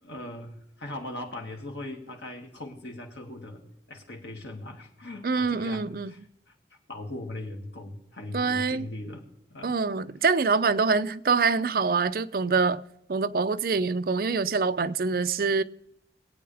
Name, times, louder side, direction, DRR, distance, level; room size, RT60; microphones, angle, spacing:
voice 1, 0.0-3.6 3.9-6.2 6.9-9.2 9.5-9.8, left 1 dB, 90° left, 2.3 m, -39 dB
voice 2, 5.2-6.1 8.3-8.8 9.6-12.8 13.1-15.6, right 4 dB, 55° right, 0.5 m, -25 dB
22.0 x 8.6 x 3.4 m
head